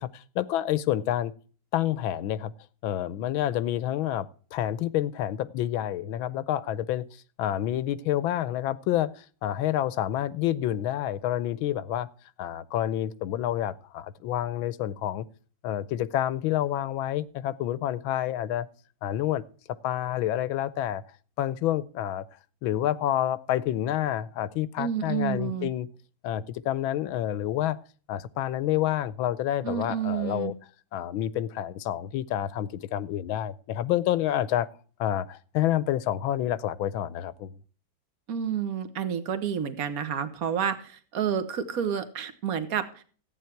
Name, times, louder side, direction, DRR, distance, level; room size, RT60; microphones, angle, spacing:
voice 1, 0.0-1.3 1.7-2.5 2.8-7.0 7.4-12.1 12.4-15.2 15.6-18.7 19.0-19.4 19.8-21.0 21.4-22.2 22.6-25.9 26.2-27.8 28.1-30.5 30.9-34.7 35.0-37.5, left 12 dB, 85° left, 18 dB, 1.5 m, -28 dB
voice 2, 24.8-25.7 29.6-30.5 38.3-43.0, right 8 dB, 50° right, 10 dB, 1.7 m, -30 dB
14.5 x 9.2 x 4.5 m, 0.41 s
omnidirectional pair, 2.1 m